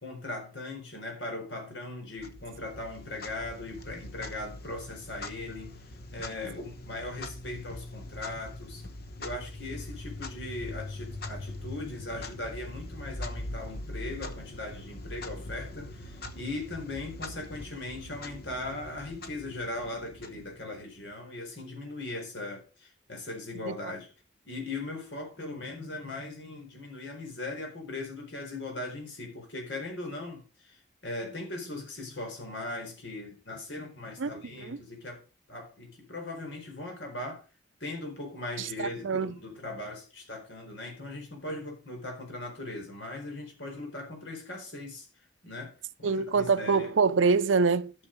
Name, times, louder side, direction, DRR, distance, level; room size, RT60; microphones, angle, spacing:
voice 1, 0.0-5.8 6.1-8.9 9.2-24.1 24.4-35.2 35.5-37.4 37.8-45.1 45.4-45.7 46.0-46.9, left 2 dB, 70° left, 4.4 m, -39 dB
Clock, 2.2-20.9, left 2 dB, 50° left, 1.1 m, -42 dB
voice 2, 38.6-39.4 46.0-47.9, right 4 dB, 80° right, 0.6 m, -25 dB
11.5 x 6.5 x 5.1 m
head